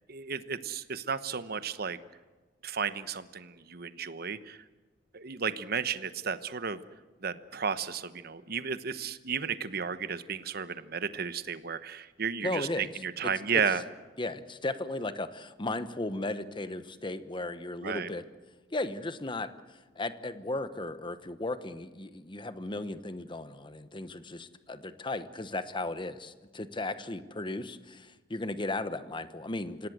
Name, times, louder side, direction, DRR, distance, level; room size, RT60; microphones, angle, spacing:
voice 1, 0.1-2.0 2.6-4.6 5.1-6.8 7.2-13.8 17.8-18.1, right 6 dB, 60° right, 12 dB, 1.1 m, -33 dB
voice 2, 12.4-12.9 13.2-13.6 14.2-18.2 18.7-19.5 19.9-29.9, left 2 dB, 25° left, 12 dB, 1.0 m, -36 dB
26.5 x 17.5 x 8.0 m, 1.3 s
head